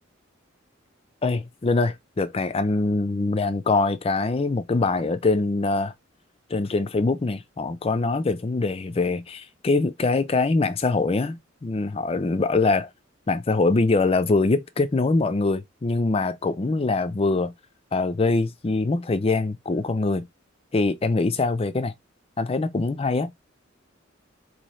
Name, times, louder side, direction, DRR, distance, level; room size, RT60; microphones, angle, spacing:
voice 1, 1.2-5.9 6.5-12.9 13.3-17.5 17.9-20.3 20.7-21.9 22.4-23.3, left 3 dB, 30° left, 0.4 m, -23 dB
3.1 x 2.7 x 4.1 m
head